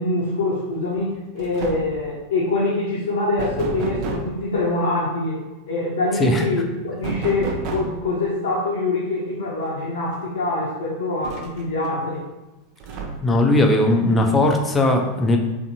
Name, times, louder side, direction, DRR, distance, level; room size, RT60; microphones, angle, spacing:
voice 1, 0.0-5.4 5.7-12.2, left 2 dB, 75° left, -5 dB, 0.6 m, -24 dB
sound 1, 0.9-1.1 1.4-2.0 3.4-4.4 7.0-8.1 9.6-9.7 10.1-10.2 11.2-11.9 12.8-13.4, right 4 dB, 50° right, 0.4 m, -31 dB
voice 2, 13.2-15.4, left 1 dB, 20° left, 2 dB, 0.4 m, -18 dB
2.6 x 2.4 x 2.7 m, 1.1 s
hypercardioid pair, 90°, 0 cm